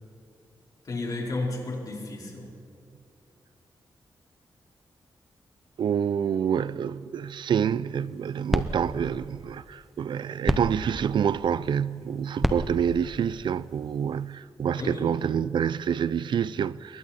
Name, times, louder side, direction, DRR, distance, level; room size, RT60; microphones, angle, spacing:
voice 1, 0.8-2.6 14.8-15.2, left 2 dB, 50° left, 4.7 m, -33 dB
voice 2, 5.8-17.0, right 8 dB, 70° right, 0.5 m, -27 dB
sound 1, 7.9-14.3, equal, ahead, 1.0 m, -33 dB
28.5 x 22.0 x 4.3 m
wide cardioid pair, 130°, 8 cm